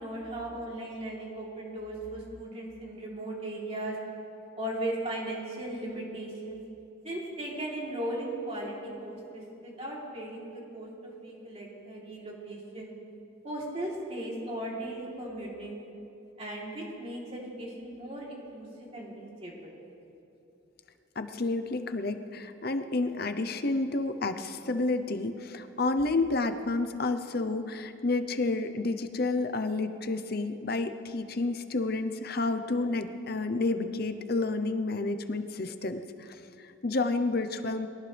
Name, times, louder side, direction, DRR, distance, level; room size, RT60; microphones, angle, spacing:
voice 1, 0.0-3.9 4.6-6.6 7.0-12.9 13.4-15.8 16.4-19.7, right 1 dB, 30° right, -4 dB, 3.4 m, -37 dB
voice 2, 21.2-37.9, left 3 dB, 50° left, 9 dB, 0.8 m, -30 dB
23.0 x 18.0 x 3.4 m, 2.8 s
head